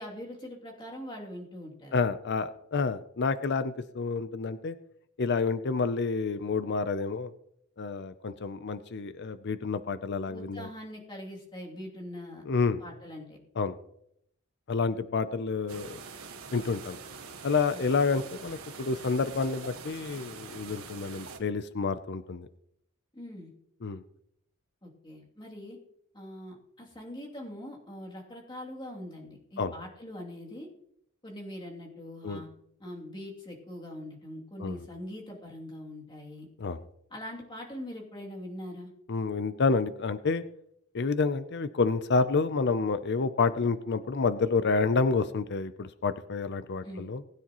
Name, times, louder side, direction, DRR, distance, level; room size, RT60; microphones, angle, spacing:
voice 1, 0.0-2.0 10.3-12.4 12.8-13.4 17.7-17.8 23.1-23.5 24.8-25.8 26.1-30.7 31.2-32.5 32.8-36.5 37.1-38.9 46.8-47.1, left 1 dB, 25° left, -2 dB, 2.7 m, -42 dB
voice 2, 1.9-4.8 5.2-7.3 7.8-10.7 12.5-12.8 13.6-13.8 14.7-16.0 16.5-17.0 17.4-22.5 23.8-24.0 29.6-29.7 32.2-32.4 34.6-34.8 36.6-36.8 39.1-40.4 40.9-47.2, left 4 dB, 55° left, 13 dB, 0.6 m, -29 dB
sound 1, 15.7-21.4, right 5 dB, 80° right, 1.5 m, -44 dB
20.0 x 9.9 x 3.0 m, 0.74 s
head